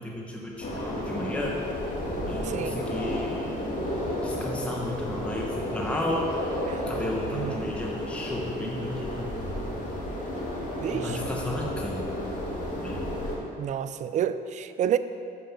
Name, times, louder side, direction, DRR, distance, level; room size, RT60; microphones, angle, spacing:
voice 1, 0.0-1.6 2.3-3.6 4.2-6.3 6.9-9.5 10.9-12.1 12.8-13.0, left 1 dB, 5° left, -2 dB, 1.0 m, -33 dB
sound 1, 0.6-13.4, left 1 dB, 50° left, 2.1 m, -32 dB
voice 2, 2.4-2.8 6.7-6.9 7.3-7.7 10.8-11.2 13.6-15.0, right 9 dB, 45° right, 12 dB, 0.4 m, -29 dB
7.0 x 5.7 x 6.9 m, 2.5 s
cardioid pair, 110°, 17 cm